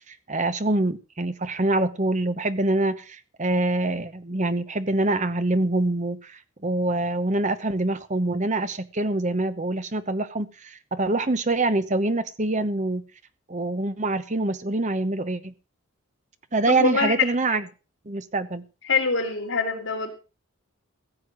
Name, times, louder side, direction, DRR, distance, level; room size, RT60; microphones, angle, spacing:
voice 1, 0.1-13.0 13.5-15.5 16.5-17.6 18.1-18.6, right 2 dB, 35° right, 12 dB, 1.0 m, -25 dB
voice 2, 16.7-17.1 18.9-20.1, left 4 dB, 60° left, 1 dB, 4.2 m, -24 dB
15.5 x 7.8 x 6.3 m, 0.33 s
head